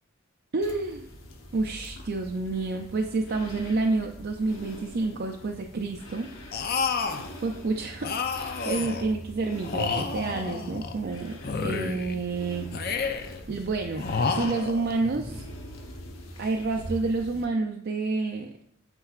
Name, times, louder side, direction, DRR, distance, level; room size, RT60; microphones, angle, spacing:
voice 1, 0.5-1.1 1.5-6.3 7.4-12.7 13.5-15.4 16.4-18.5, right 3 dB, 50° right, 2 dB, 0.4 m, -29 dB
sound 1, 0.6-17.4, equal, 80° left, 1.0 m, -43 dB
sound 2, 6.5-7.3 8.0-9.1 9.6-11.0 11.4-12.2 12.7-13.4 13.9-15.0, left 5 dB, 50° left, 0.5 m, -30 dB
8.6 x 4.5 x 2.4 m, 0.69 s
head